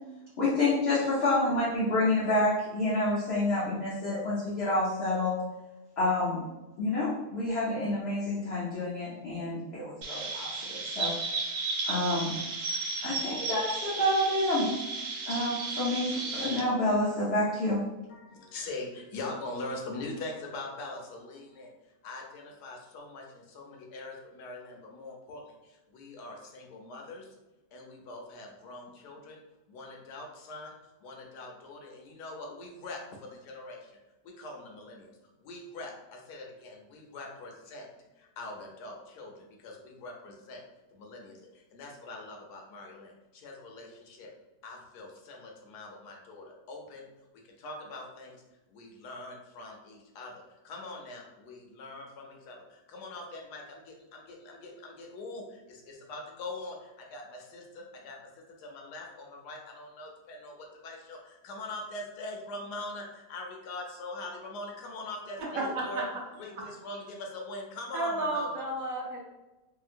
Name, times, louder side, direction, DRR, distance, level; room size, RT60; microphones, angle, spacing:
voice 1, 0.4-5.4 6.0-6.4 6.8-11.1 11.9-12.3 13.0-14.7 15.3-17.8, left 1 dB, 55° left, -8 dB, 0.7 m, -28 dB
Chirp tweet, 10.0-16.6, right 3 dB, 85° right, 1.3 m, -34 dB
voice 2, 18.1-21.7 22.0-27.3 27.7-29.4 29.7-34.0 34.2-35.1 35.4-37.9 38.2-40.6 40.9-44.3 44.6-47.1 47.4-48.4 48.7-58.3 58.6-66.1 66.3-68.6, left 2 dB, 75° left, 1 dB, 1.2 m, -43 dB
voice 3, 65.5-66.1 67.9-69.2, right 2 dB, 65° right, -2 dB, 0.9 m, -32 dB
2.8 x 2.8 x 2.5 m, 1.0 s
omnidirectional pair, 1.8 m